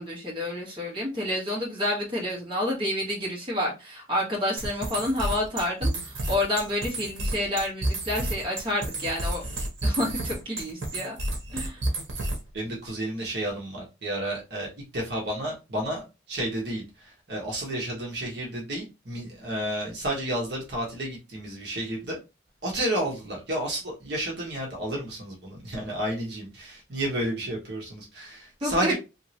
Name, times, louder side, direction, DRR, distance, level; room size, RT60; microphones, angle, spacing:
voice 1, 0.0-9.4 9.8-11.2 11.5-11.8 28.6-28.9, left 1 dB, 25° right, 1.4 m, -29 dB
sound 1, 4.6-12.6, right 1 dB, 80° right, 1.0 m, -31 dB
voice 2, 12.5-22.2 22.6-28.9, right 1 dB, 55° right, 1.2 m, -31 dB
3.0 x 2.8 x 2.8 m
head